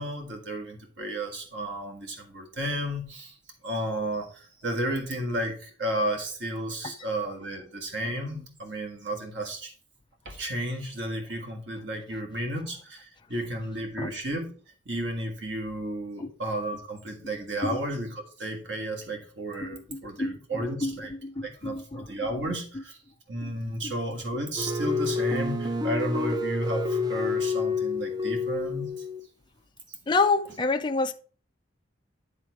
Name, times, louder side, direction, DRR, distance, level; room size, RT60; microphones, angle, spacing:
voice 1, 0.0-3.3 3.6-9.7 10.2-14.5 14.8-21.1 21.4-23.0 23.3-28.9 29.9-30.0, right 1 dB, 70° right, 1.7 m, -33 dB
voice 2, 19.6-22.8 23.4-23.5 23.8-23.9 30.1-31.1, left 3 dB, 25° left, 0.5 m, -29 dB
sound 1, 24.6-29.2, left 3 dB, 20° right, 0.7 m, -28 dB
10.0 x 3.8 x 4.7 m
head